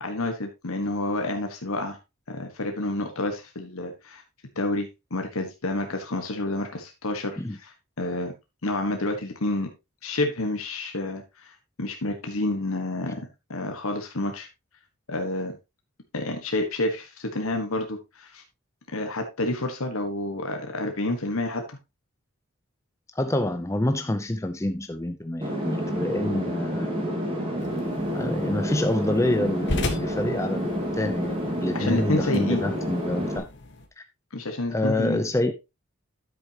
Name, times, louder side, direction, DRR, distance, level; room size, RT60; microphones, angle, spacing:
voice 1, 0.0-2.0 2.3-4.2 4.5-8.3 8.6-9.7 10.0-11.5 11.8-14.5 15.1-15.5 16.1-18.4 18.9-21.6 31.7-32.6 34.3-35.2, left 2 dB, 75° left, 1.4 m, -29 dB
voice 2, 23.1-26.9 28.1-33.4 34.0-34.1 34.7-35.5, left 1 dB, 15° left, 0.5 m, -27 dB
sound 1, 25.4-33.4, equal, 25° right, 2.6 m, -29 dB
sound 2, 27.6-33.9, left 2 dB, 55° left, 1.5 m, -37 dB
10.0 x 8.0 x 2.9 m
head